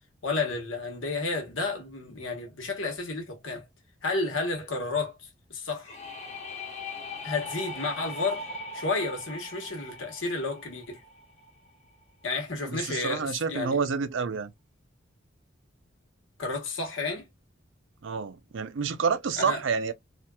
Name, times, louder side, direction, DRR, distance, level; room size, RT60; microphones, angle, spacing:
voice 1, 0.2-3.7 4.0-5.9 7.2-8.4 8.7-11.0 12.2-13.8 16.4-17.3 19.4-19.6, left 3 dB, 80° left, 1.1 m, -31 dB
sound 1, 5.8-11.5, left 2 dB, 35° left, 0.9 m, -40 dB
voice 2, 12.6-14.5 18.0-19.9, right 5 dB, 75° right, 0.5 m, -28 dB
2.8 x 2.4 x 2.2 m
head